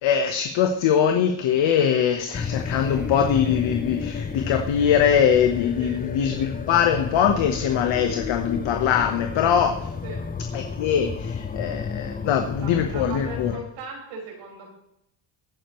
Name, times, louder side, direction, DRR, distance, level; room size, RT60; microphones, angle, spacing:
voice 1, 0.0-9.9 10.5-13.5, left 8 dB, 65° left, 5 dB, 1.3 m, -22 dB
sound 1, 2.3-13.6, left 5 dB, 20° left, 0.7 m, -31 dB
voice 2, 12.2-14.7, right 3 dB, 90° right, -2 dB, 5.5 m, -38 dB
17.5 x 9.6 x 3.2 m, 0.79 s
cardioid pair, 95°, 48 cm